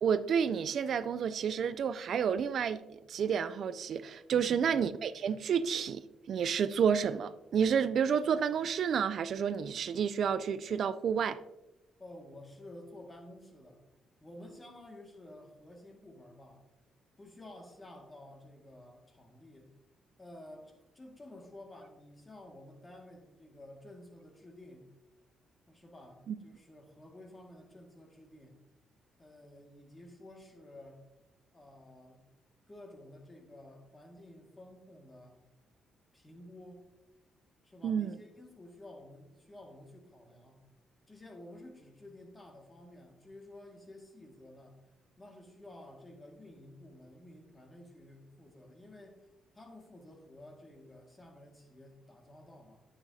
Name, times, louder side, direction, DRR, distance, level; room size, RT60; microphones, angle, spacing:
voice 1, 0.0-2.8 3.1-6.0 6.3-11.4 26.3-26.4 37.8-38.1, right 7 dB, 60° right, 0.3 m, -30 dB
voice 2, 4.3-4.8 12.0-13.8 14.2-16.7 17.2-19.7 20.2-24.9 25.7-28.6 29.2-31.1 31.5-32.2 32.7-35.4 36.1-36.9 37.6-40.6 41.1-44.8 45.2-49.3 49.5-52.8, left 1 dB, 25° left, 1.8 m, -52 dB
9.4 x 7.0 x 2.7 m
cardioid pair, 90°, 0 cm